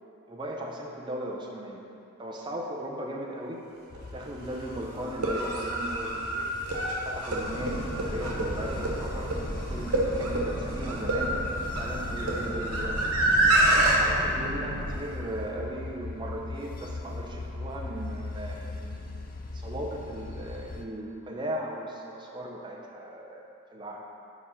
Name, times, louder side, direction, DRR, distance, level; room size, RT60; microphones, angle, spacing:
voice 1, 0.3-1.8 2.2-3.6 4.1-6.6 7.0-9.3 9.7-11.4 11.8-13.0 14.0-19.1 19.5-24.0, right 1 dB, 20° right, -1 dB, 0.5 m, -37 dB
sound 1, 3.9-20.8, left 2 dB, 40° left, 0.4 m, -41 dB
sound 2, 3.9-4.0 5.1-14.0, right 1 dB, 85° right, 1.0 m, -27 dB
Boat Water vehicle, 7.4-14.9, equal, 70° left, 1.3 m, -36 dB
5.0 x 5.0 x 5.4 m, 2.7 s
head